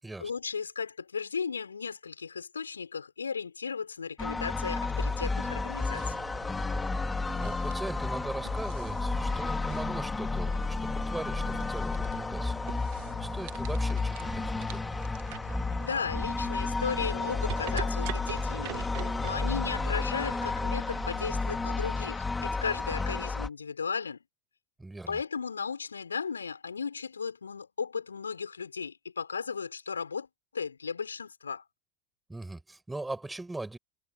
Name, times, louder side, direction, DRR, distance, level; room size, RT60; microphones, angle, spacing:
voice 1, 0.2-6.1 15.8-24.2 25.1-30.3 30.5-31.6, left 5 dB, 80° left, 5.6 m, -35 dB
sound 1, 4.2-23.5, left 3 dB, 15° left, 3.8 m, -32 dB
sound 2, 4.9-21.9, right 26 dB, 60° right, 2.4 m, -45 dB
voice 2, 7.1-12.6 13.2-14.9 24.8-25.2 32.3-33.8, right 2 dB, 10° right, 7.6 m, -40 dB
figure-of-eight pair, 70°, 0 cm